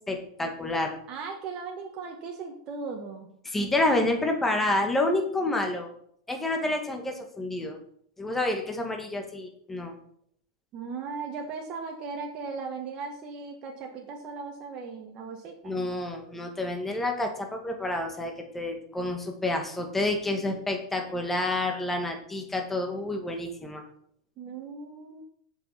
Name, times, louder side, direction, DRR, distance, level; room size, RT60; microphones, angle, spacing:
voice 1, 0.1-1.0 3.4-5.9 6.3-7.8 8.2-9.9 15.6-23.8, left 2 dB, 10° left, 3 dB, 2.1 m, -29 dB
voice 2, 1.1-3.3 3.9-4.0 10.7-15.7 24.4-25.2, right 4 dB, 40° right, 1 dB, 1.6 m, -37 dB
7.5 x 6.4 x 5.9 m, 0.66 s
hypercardioid pair, 100°, 2 cm